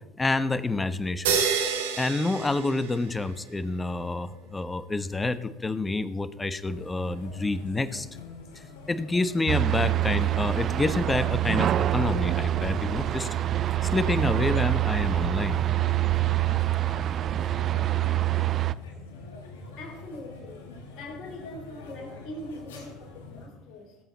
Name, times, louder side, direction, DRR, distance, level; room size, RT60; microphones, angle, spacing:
voice 1, 0.2-1.4 2.0-8.1 8.9-13.3 13.9-15.6, left 2 dB, 20° left, 13 dB, 1.0 m, -28 dB
sound 1, 1.2-3.4, right 6 dB, 80° right, 1.8 m, -28 dB
sound 2, 6.7-23.5, left 3 dB, 80° left, 4.5 m, -44 dB
sound 3, 9.5-18.7, right 14 dB, 50° right, 0.4 m, -26 dB
voice 2, 19.8-20.7 21.0-24.0, left 1 dB, 55° left, 2 dB, 4.0 m, -42 dB
18.0 x 8.0 x 4.2 m, 1.1 s
hypercardioid pair, 70°, 0 cm